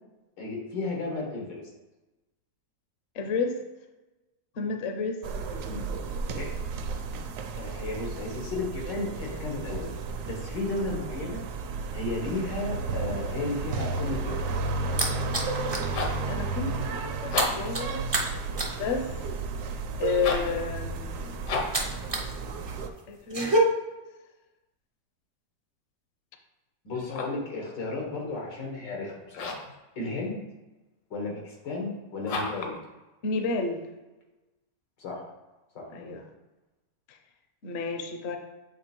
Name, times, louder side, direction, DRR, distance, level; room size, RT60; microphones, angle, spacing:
voice 1, 0.4-1.6 5.7-5.9 6.3-6.5 7.6-9.9 10.2-11.4 11.9-14.4 26.8-29.5 30.0-30.5 31.1-32.8 35.0-35.3 35.7-36.2, left 2 dB, 90° left, -1 dB, 2.2 m, -33 dB
voice 2, 3.1-3.6 4.6-5.2 16.3-18.0 18.8-19.1 20.0-21.3 23.1-23.5 33.2-33.8 36.1-36.2 37.1-37.2 37.6-38.4, left 4 dB, 55° left, 5 dB, 0.7 m, -30 dB
sound 1, 5.2-22.9, right 4 dB, 75° right, 1.1 m, -33 dB
sound 2, 14.5-15.9 16.3-16.5 16.8-22.3 22.6-23.6, right 1 dB, 35° right, 0.4 m, -31 dB
sound 3, 15.9-16.3 17.2-17.8 20.1-20.6 21.4-21.9 26.9-27.5 29.3-29.8 32.2-32.8, left 4 dB, 70° left, 1.5 m, -32 dB
7.7 x 3.2 x 4.4 m, 1.1 s
omnidirectional pair, 1.9 m